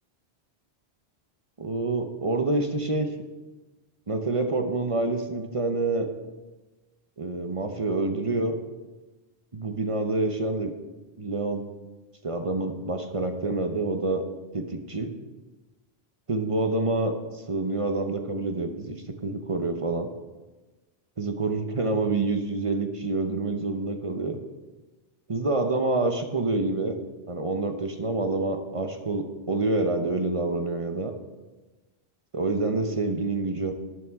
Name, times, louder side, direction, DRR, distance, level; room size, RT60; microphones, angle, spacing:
voice 1, 1.6-3.1 4.1-6.1 7.2-8.6 9.5-10.7 11.2-11.6 12.2-14.2 14.5-15.1 16.3-20.1 21.2-24.4 25.3-27.0 27.3-31.1 32.3-33.7, right 2 dB, 35° right, 6 dB, 0.8 m, -27 dB
12.5 x 9.5 x 3.6 m, 1.2 s
omnidirectional pair, 1.1 m